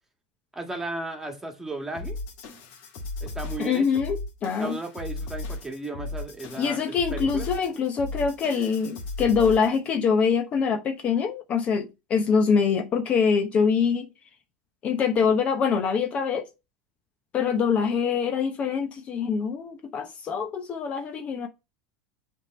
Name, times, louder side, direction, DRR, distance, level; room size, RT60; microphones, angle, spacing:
voice 1, 0.5-2.2 3.2-4.0 4.6-7.5, right 2 dB, 10° right, 1.7 m, -35 dB
sound 1, 1.9-9.9, left 2 dB, 60° left, 2.3 m, -36 dB
voice 2, 3.6-4.2 4.4-4.8 6.6-14.1 14.8-16.5 17.3-21.5, left 6 dB, 35° left, 0.9 m, -24 dB
7.1 x 3.7 x 4.3 m
supercardioid pair, 110°, 4 cm